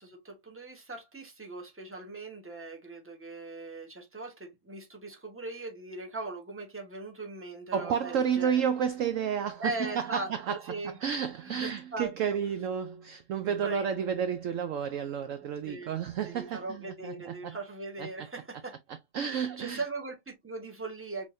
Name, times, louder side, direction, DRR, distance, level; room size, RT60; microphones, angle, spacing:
voice 1, 0.0-8.6 9.6-10.9 11.5-12.1 13.6-13.9 15.7-15.9 16.2-18.7 19.3-21.3, right 3 dB, 10° right, 1.0 m, -39 dB
voice 2, 7.7-17.6 18.0-18.3 18.9-19.8, right 7 dB, 70° right, 0.8 m, -31 dB
5.1 x 3.4 x 2.6 m
omnidirectional pair, 1.7 m